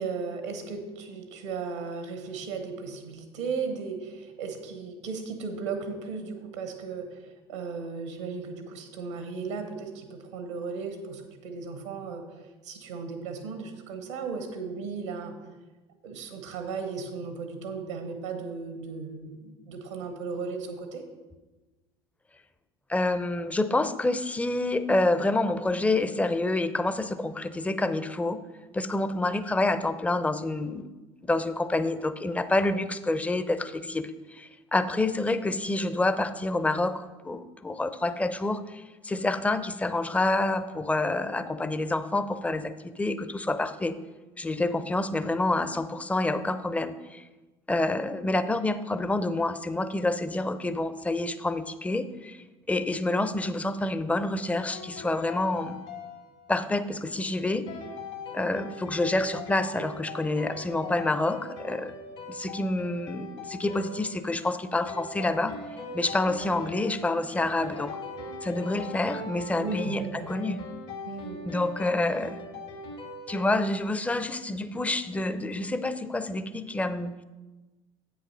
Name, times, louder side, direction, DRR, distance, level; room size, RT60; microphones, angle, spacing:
voice 1, 0.0-15.3 16.0-21.0 69.5-70.3 71.1-71.4, right 5 dB, 90° right, 6 dB, 1.1 m, -36 dB
voice 2, 22.9-28.4 28.7-30.9 31.2-44.0 44.4-47.2 47.7-52.4 52.7-55.8 56.5-57.7 58.3-61.9 62.3-65.6 65.9-67.9 68.4-70.6 71.4-72.4 73.3-77.2, left 2 dB, 10° left, 12 dB, 0.5 m, -28 dB
sound 1, 54.7-56.9 57.7-73.4, left 2 dB, 70° left, 2.2 m, -41 dB
8.0 x 6.3 x 5.4 m, 1.2 s
hypercardioid pair, 70°, 14 cm